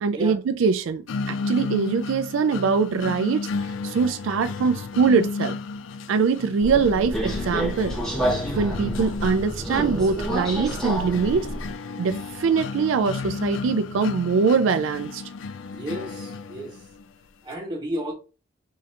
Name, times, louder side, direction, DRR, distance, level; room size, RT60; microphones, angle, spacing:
voice 1, 0.0-5.6 6.1-8.0 8.5-11.5 12.0-15.2, right 5 dB, 80° right, 0.3 m, -23 dB
sound 1, 1.1-17.0, left 4 dB, 75° left, 0.4 m, -33 dB
Subway metro underground, 6.6-11.7, right 1 dB, 5° left, 0.7 m, -29 dB
voice 2, 15.7-16.8 17.4-18.1, equal, 20° right, 1.3 m, -32 dB
3.7 x 2.8 x 3.2 m
head